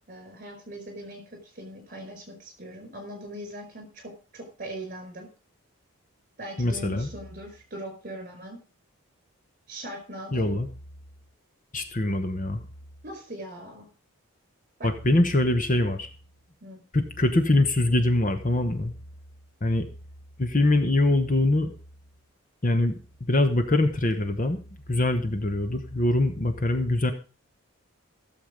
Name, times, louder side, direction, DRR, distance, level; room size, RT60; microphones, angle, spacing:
voice 1, 0.1-5.3 6.4-8.6 9.7-10.5 13.0-13.9 14.8-14.9 16.6-16.8, right 1 dB, 40° right, 5 dB, 4.9 m, -40 dB
voice 2, 6.6-7.1 10.3-10.7 11.7-12.6 14.8-16.1 16.9-18.9 19.6-19.9 20.4-21.8 22.6-24.6 24.9-27.1, left 2 dB, 35° left, 8 dB, 1.0 m, -23 dB
15.0 x 7.2 x 5.1 m, 0.36 s
head